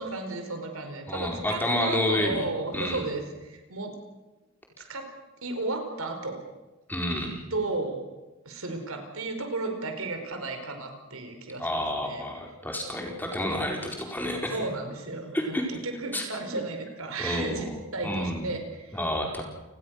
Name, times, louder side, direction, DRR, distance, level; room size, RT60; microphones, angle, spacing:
voice 1, 0.0-3.9 4.8-5.1 5.4-6.4 7.5-8.0 8.4-12.3 14.5-19.0, right 2 dB, 75° right, 6 dB, 4.8 m, -34 dB
voice 2, 1.1-2.5 2.7-3.0 6.9-7.4 11.6-14.6 15.3-15.6 16.1-16.2 17.2-17.8 18.0-18.5 18.9-19.4, left 1 dB, 10° left, 1 dB, 4.5 m, -29 dB
29.5 x 20.0 x 6.6 m, 1.1 s
head